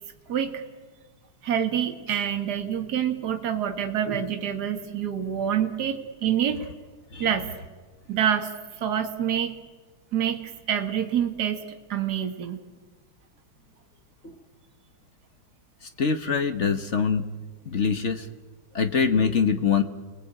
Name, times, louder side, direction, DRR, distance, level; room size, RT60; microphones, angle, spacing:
voice 1, 0.3-0.6 1.4-6.6 7.2-7.5 8.1-8.5 8.8-9.5 10.1-10.4 10.7-12.6, right 9 dB, 50° right, 6 dB, 2.2 m, -26 dB
voice 2, 16.0-17.2 17.7-18.3 18.7-19.8, left 6 dB, 40° left, 9 dB, 1.2 m, -23 dB
29.5 x 21.0 x 8.8 m, 1.4 s
omnidirectional pair, 2.3 m